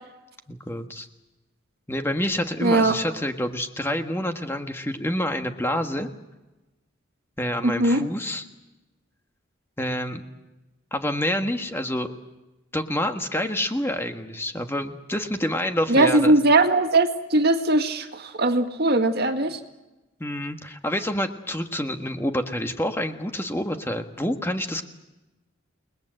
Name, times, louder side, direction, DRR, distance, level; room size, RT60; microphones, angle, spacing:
voice 1, 0.5-1.1 1.9-6.1 7.4-8.4 9.8-10.2 10.9-12.1 12.7-16.4 20.2-24.8, left 1 dB, 10° left, 6 dB, 1.5 m, -27 dB
voice 2, 2.6-3.0 7.6-8.0 15.9-19.6, right 2 dB, 50° right, 6 dB, 2.1 m, -20 dB
29.5 x 21.0 x 7.9 m, 1.0 s
head